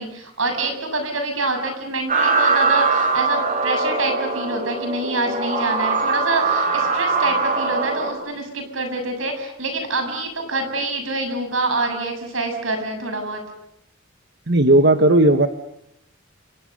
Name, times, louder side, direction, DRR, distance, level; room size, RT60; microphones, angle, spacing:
voice 1, 0.0-13.4, right 2 dB, 85° right, 6 dB, 7.2 m, -26 dB
sound 1, 2.1-8.1, right 4 dB, 40° right, 4.8 m, -21 dB
voice 2, 14.5-15.5, right 1 dB, 55° right, 7 dB, 1.4 m, -14 dB
29.5 x 26.5 x 6.8 m, 0.81 s
head